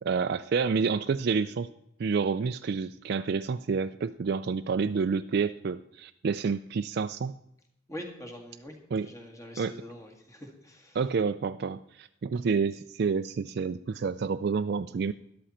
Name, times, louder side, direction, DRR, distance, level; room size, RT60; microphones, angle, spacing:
voice 1, 0.0-1.7 2.0-7.3 8.9-9.1 9.6-9.7 10.9-15.1, right 5 dB, 50° right, 9 dB, 0.3 m, -29 dB
voice 2, 7.9-11.0, equal, 15° left, 3 dB, 2.0 m, -44 dB
13.0 x 11.5 x 4.3 m, 0.79 s
head